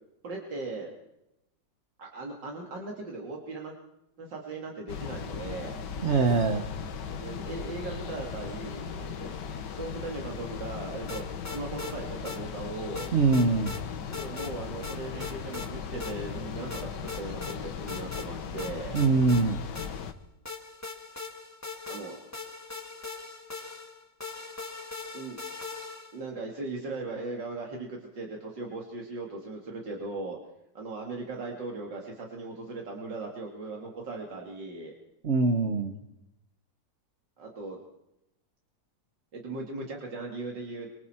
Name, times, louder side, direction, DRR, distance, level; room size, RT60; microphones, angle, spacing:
voice 1, 0.2-0.9 2.0-3.7 4.2-5.8 7.1-9.3 9.7-13.1 14.1-19.0 21.9-22.2 25.1-25.4 26.1-30.4 30.7-34.9 37.4-37.8 39.3-40.9, right 3 dB, 85° right, 0 dB, 3.1 m, -38 dB
sound 1, 4.9-20.1, left 6 dB, 75° left, 1.8 m, -38 dB
voice 2, 6.0-6.7 13.1-13.8 18.9-19.6 35.2-35.9, right 3 dB, 45° right, 7 dB, 1.3 m, -23 dB
sound 2, 11.1-11.9 12.3-12.4 13.0-13.8 14.1-14.5 14.8-15.7 16.0-16.1 16.7-17.6 17.9-18.3 18.6-20.1 20.5-26.2, left 4 dB, 10° left, 1.7 m, -40 dB
25.0 x 24.0 x 4.5 m, 0.87 s
omnidirectional pair, 1.9 m